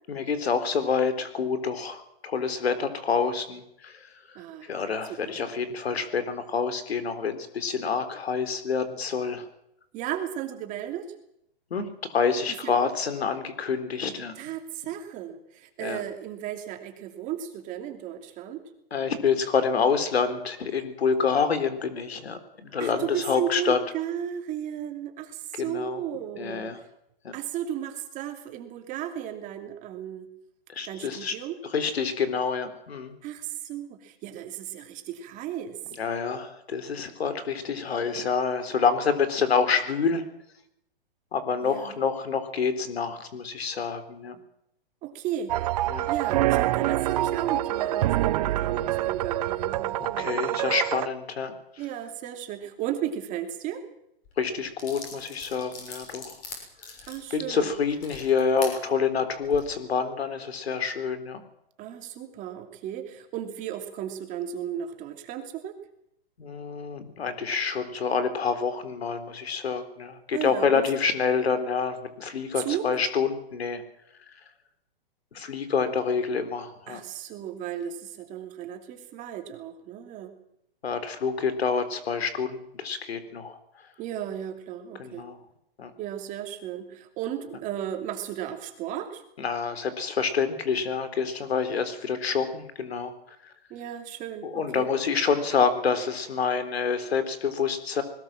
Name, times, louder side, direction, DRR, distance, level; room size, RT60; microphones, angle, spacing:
voice 1, 0.1-4.0 4.7-9.4 11.7-14.3 15.8-16.0 18.9-23.8 25.6-26.0 26.4-26.8 27.2-27.4 30.7-31.3 31.7-33.1 36.0-40.2 41.3-44.4 45.9-46.1 50.0-51.6 54.4-56.3 57.3-61.4 66.4-73.8 75.3-77.0 80.8-83.6 85.0-85.4 85.8-85.9 89.4-93.1 94.4-98.0, left 5 dB, 90° left, 11 dB, 3.8 m, -27 dB
voice 2, 4.3-4.7 5.1-5.4 9.9-11.1 12.5-12.7 14.3-18.6 22.8-26.7 27.3-30.3 30.8-31.6 33.2-35.8 41.6-42.0 45.0-45.6 46.1-50.7 51.8-53.8 57.1-57.7 61.8-65.8 70.3-70.9 72.5-72.9 76.9-80.3 84.0-85.2 86.0-89.2 93.7-94.9, right 10 dB, 25° right, 5 dB, 2.8 m, -35 dB
sound 1, 45.5-51.1, right 14 dB, 40° right, 0.7 m, -26 dB
sound 2, 54.2-54.3 54.8-58.8 59.3-59.6, left 4 dB, 25° left, 6.6 m, -41 dB
21.0 x 18.5 x 7.5 m, 0.77 s
hypercardioid pair, 150°, 30 cm